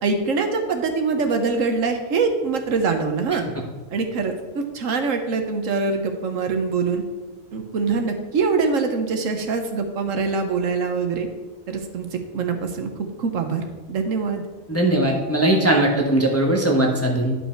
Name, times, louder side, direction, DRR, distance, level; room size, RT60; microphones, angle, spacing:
voice 1, 0.0-3.4 3.9-7.0 7.5-11.3 11.7-12.9 13.2-14.4, right 4 dB, 70° right, 6 dB, 1.2 m, -24 dB
voice 2, 14.7-17.4, right 1 dB, 10° left, 0 dB, 0.9 m, -19 dB
10.5 x 5.5 x 4.4 m, 1.3 s
omnidirectional pair, 1.5 m